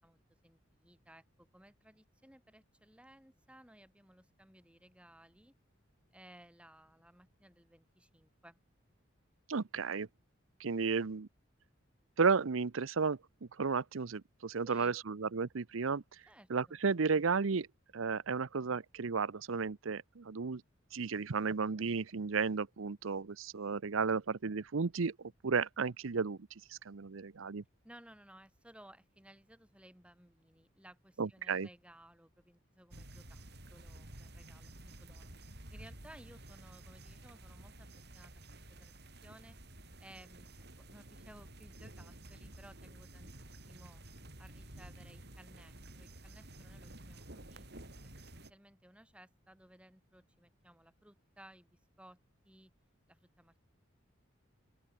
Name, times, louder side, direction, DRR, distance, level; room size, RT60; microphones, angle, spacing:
voice 1, 0.0-5.5 6.1-8.6 14.6-15.0 16.3-16.8 27.8-33.4 33.7-37.9 38.1-38.3 38.7-39.6 40.0-40.6 40.9-44.0 44.4-47.7 48.0-52.2 52.5-52.7 53.1-53.7, right 1 dB, 5° right, 5.5 m, -59 dB
voice 2, 9.5-10.1 10.6-11.3 12.2-13.2 13.6-16.0 16.5-17.7 17.9-20.6 20.9-25.1 25.4-26.4 26.7-27.6 31.2-31.7, right 5 dB, 75° right, 0.7 m, -33 dB
sound 1, 32.9-48.5, right 1 dB, 55° right, 6.6 m, -52 dB
open air
head